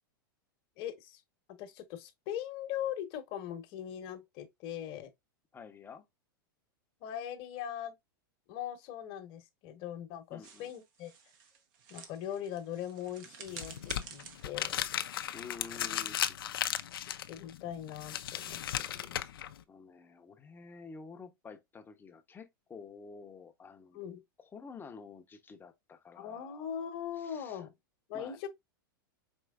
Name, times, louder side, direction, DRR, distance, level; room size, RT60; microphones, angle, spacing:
voice 1, 0.8-1.2 1.6-5.1 7.0-7.9 8.5-11.1 11.9-13.7 14.1-14.8 17.3-18.6 18.9-19.2 23.9-24.2 26.1-27.7 28.1-28.5, left 10 dB, 50° left, 1.0 m, -40 dB
voice 2, 5.5-6.1 10.3-10.7 15.3-16.4 19.7-24.0 24.4-26.7 27.2-27.7 28.1-28.5, left 5 dB, 15° left, 0.7 m, -50 dB
sound 1, 10.4-15.7, right 6 dB, 60° right, 1.0 m, -51 dB
sound 2, 13.5-19.6, left 11 dB, 80° left, 0.4 m, -36 dB
4.5 x 3.0 x 2.3 m
hypercardioid pair, 115°, 12 cm